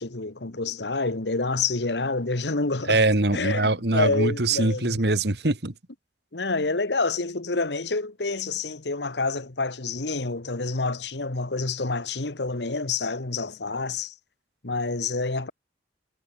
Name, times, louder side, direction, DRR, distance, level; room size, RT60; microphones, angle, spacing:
voice 1, 0.0-3.0 3.3-5.0 6.3-14.1 14.6-15.5, left 3 dB, 75° left, 1.6 m, -28 dB
voice 2, 2.9-5.7, right 2 dB, 65° right, 1.8 m, -23 dB
head